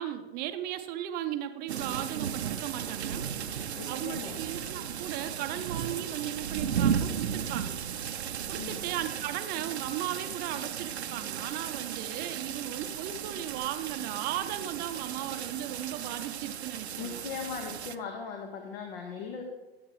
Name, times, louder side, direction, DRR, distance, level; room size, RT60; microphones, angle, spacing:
voice 1, 0.0-3.3 3.9-7.8 8.5-17.3, right 11 dB, 30° right, 9 dB, 0.6 m, -36 dB
sound 1, 1.7-18.0, right 8 dB, 85° right, 0.6 m, -35 dB
voice 2, 3.8-4.4 8.6-8.8 17.0-19.4, left 6 dB, 60° left, 2 dB, 1.5 m, -39 dB
13.0 x 8.0 x 3.1 m, 1.1 s
hypercardioid pair, 110°, 32 cm